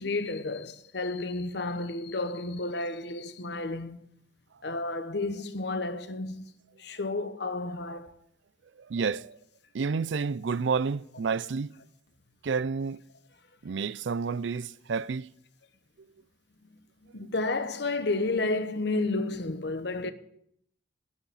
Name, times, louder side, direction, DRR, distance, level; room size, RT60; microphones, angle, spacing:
voice 1, 0.0-4.0 4.6-6.5 6.8-8.2 17.0-20.1, left 2 dB, 60° left, 1.0 m, -31 dB
voice 2, 8.8-9.4 9.7-11.7 12.4-13.0 13.6-15.3, right 5 dB, 70° right, 0.4 m, -30 dB
11.0 x 9.5 x 8.5 m
head